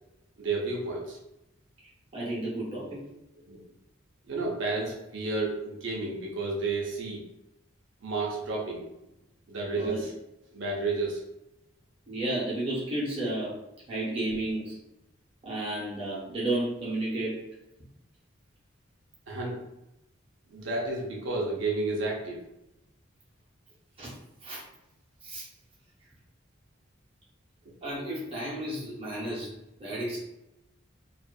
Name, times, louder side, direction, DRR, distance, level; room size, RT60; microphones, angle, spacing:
voice 1, 0.4-1.2 3.5-3.6 4.3-7.2 8.0-8.8 9.5-10.1 10.5-11.2 19.3-19.6 20.5-22.4, right 3 dB, 65° right, -2 dB, 0.6 m, -31 dB
voice 2, 2.1-3.0 9.8-10.0 12.1-13.5 13.9-14.8 15.4-17.4 24.0-24.1 24.4-24.6 25.2-25.5 27.8-29.5 29.8-30.2, right 1 dB, 25° right, -7 dB, 0.7 m, -32 dB
2.5 x 2.4 x 2.3 m, 0.91 s
head